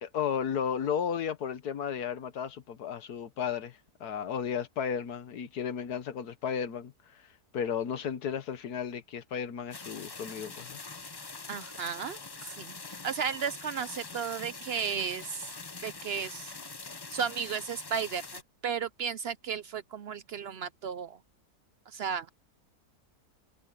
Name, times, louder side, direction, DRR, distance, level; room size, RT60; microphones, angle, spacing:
voice 1, 0.0-10.8 12.5-12.6, left 7 dB, 80° left, 1.6 m, -34 dB
sound 1, 9.7-18.4, left 4 dB, 35° left, 0.3 m, -44 dB
voice 2, 11.5-15.5 15.8-16.5 17.1-21.2 21.9-22.3, right 7 dB, 70° right, 0.6 m, -34 dB
omnidirectional pair, 1.6 m